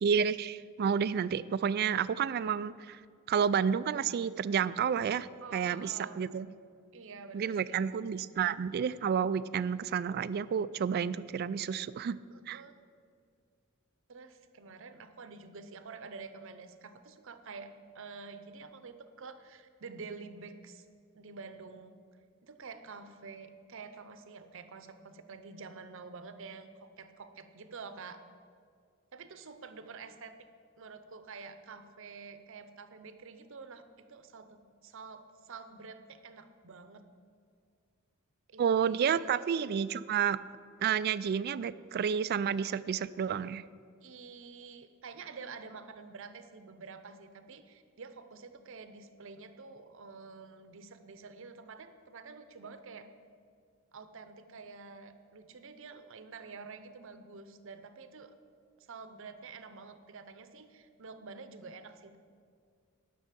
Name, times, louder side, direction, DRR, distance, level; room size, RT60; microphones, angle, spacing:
voice 1, 0.0-3.0 3.3-5.3 5.5-6.5 7.3-12.2 12.5-12.6 38.6-40.4 40.8-43.6, right 7 dB, 50° right, 17 dB, 0.3 m, -30 dB
voice 2, 5.4-6.3 6.9-7.8 12.3-12.7 14.1-20.9 21.1-22.0 22.4-28.2 29.1-30.4 30.8-33.8 34.1-37.1 38.5-39.4 44.0-53.1 53.9-58.3 58.8-62.2, right 4 dB, 65° right, 10 dB, 0.7 m, -48 dB
11.0 x 6.2 x 7.4 m, 2.2 s
head